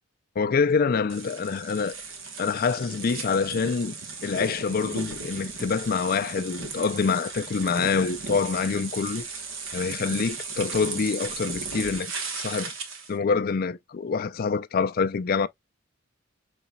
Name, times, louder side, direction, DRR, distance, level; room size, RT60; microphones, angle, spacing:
voice 1, 0.4-2.0 2.4-3.9 4.2-9.2 9.7-12.7 13.1-15.5, left 5 dB, 45° left, 0.4 m, -26 dB
sound 1, 1.1-13.1, right 4 dB, 75° right, 1.2 m, -36 dB
5.0 x 4.0 x 2.2 m
head